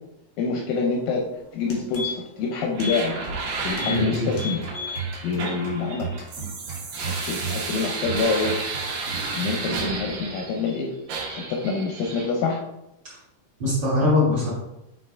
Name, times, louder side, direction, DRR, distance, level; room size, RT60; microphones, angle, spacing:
voice 1, 0.4-1.3 1.5-3.1 3.6-4.6 5.2-6.1 7.1-8.6 9.3-10.9 11.2-12.6, left 4 dB, 80° left, 0 dB, 2.0 m, -26 dB
sound 1, 1.1-1.2 1.5-2.4 2.7-3.0 3.3-3.4 3.7-4.0 4.3-5.0 5.4-5.5, left 6 dB, 55° left, 1.2 m, -33 dB
sound 2, 2.7-10.7 11.1-12.3, right 3 dB, 65° right, 2.6 m, -32 dB
sound 3, 3.5-10.2, right 6 dB, 45° right, 2.2 m, -36 dB
voice 2, 3.8-4.3 13.0-13.1 13.6-14.5, left 2 dB, 85° right, -8 dB, 1.0 m, -22 dB
7.8 x 4.0 x 3.4 m, 0.89 s
omnidirectional pair, 4.7 m